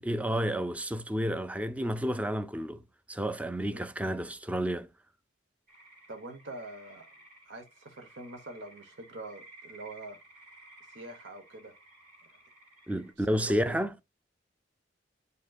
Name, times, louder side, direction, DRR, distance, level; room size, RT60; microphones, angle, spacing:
voice 1, 0.0-2.8 3.1-4.9 12.9-14.0, equal, 10° right, 0.4 m, -31 dB
sound 1, 5.7-13.1, right 2 dB, 45° right, 2.6 m, -55 dB
voice 2, 6.1-7.0 7.5-10.2 10.9-11.7 13.2-13.8, right 2 dB, 85° right, 1.1 m, -45 dB
8.0 x 5.2 x 2.3 m
head